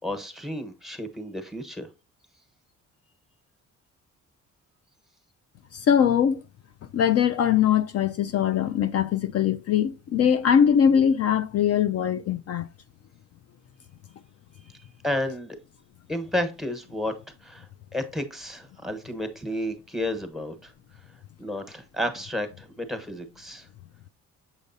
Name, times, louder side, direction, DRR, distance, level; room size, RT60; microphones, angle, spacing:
voice 1, 0.0-1.9 15.0-15.6 16.1-17.1 17.4-17.7 17.9-20.7 21.4-23.7, left 1 dB, ahead, 1.1 m, -31 dB
voice 2, 5.7-6.4 6.9-12.7, left 8 dB, 55° left, 0.5 m, -22 dB
7.3 x 5.1 x 2.7 m
cardioid pair, 90°, 30 cm